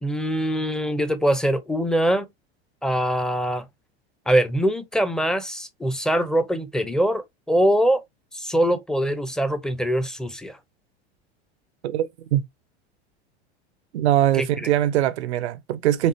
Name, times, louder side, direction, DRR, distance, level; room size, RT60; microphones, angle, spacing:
voice 1, 0.0-2.3 2.8-3.7 4.3-8.0 8.3-10.6 14.4-14.5, right 1 dB, ahead, 0.7 m, -23 dB
voice 2, 11.8-12.4 13.9-16.1, right 12 dB, 85° right, 0.7 m, -22 dB
5.1 x 2.4 x 2.7 m
hypercardioid pair, 105°, 32 cm